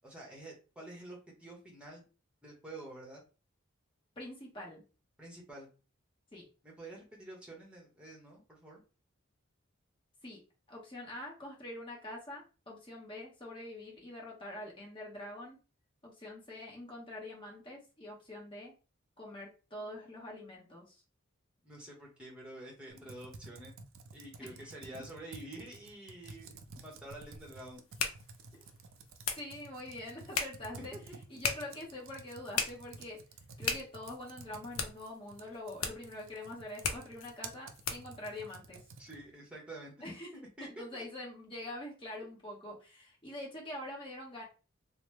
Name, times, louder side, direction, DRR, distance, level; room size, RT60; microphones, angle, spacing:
voice 1, 0.0-2.0 2.4-3.2 5.2-5.7 6.6-8.8 21.6-23.7 24.1-27.8 30.9-31.2 39.0-39.9 40.3-41.0, right 1 dB, 5° right, -2 dB, 0.9 m, -48 dB
voice 2, 4.2-4.8 6.3-6.5 10.2-10.4 10.7-15.6 16.0-18.7 19.2-21.0 24.6-24.7 29.4-30.9 31.3-33.2 33.6-38.8 40.0-40.3 40.6-44.4, left 1 dB, 25° left, -2 dB, 1.0 m, -45 dB
Computer keyboard, 22.9-39.3, right 3 dB, 70° right, 0.4 m, -52 dB
sound 1, 26.6-38.2, left 6 dB, 75° left, 0.5 m, -40 dB
3.0 x 2.0 x 3.2 m, 0.33 s
head